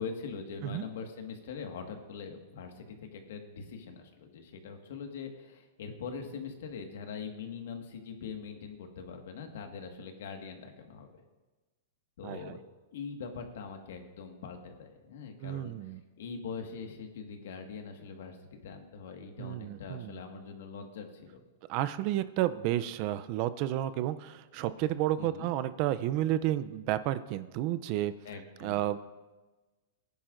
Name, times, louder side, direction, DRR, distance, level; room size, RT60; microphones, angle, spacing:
voice 1, 0.0-11.1 12.2-12.6 12.9-15.9 16.2-21.4 25.2-25.5 28.2-28.8, left 5 dB, 70° left, 5 dB, 1.6 m, -42 dB
voice 2, 12.2-12.5 15.4-16.0 19.4-20.2 21.7-28.1 28.6-29.0, right 13 dB, 40° right, 13 dB, 0.4 m, -31 dB
19.0 x 10.5 x 2.6 m, 1.2 s
supercardioid pair, 155°, 0 cm